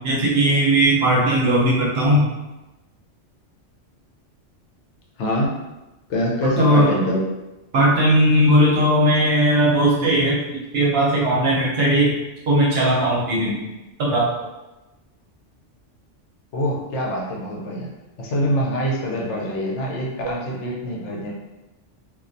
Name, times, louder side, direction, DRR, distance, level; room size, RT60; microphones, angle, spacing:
voice 1, 0.0-2.3 6.4-6.9 7.7-10.4 10.7-12.1 12.5-13.6 14.0-14.3, right 1 dB, 65° right, -4 dB, 0.8 m, -18 dB
voice 2, 5.2-5.5 6.1-7.3 16.5-17.9 18.2-21.3, equal, 75° left, -3 dB, 0.9 m, -24 dB
2.2 x 2.2 x 2.5 m, 1.0 s
omnidirectional pair, 1.3 m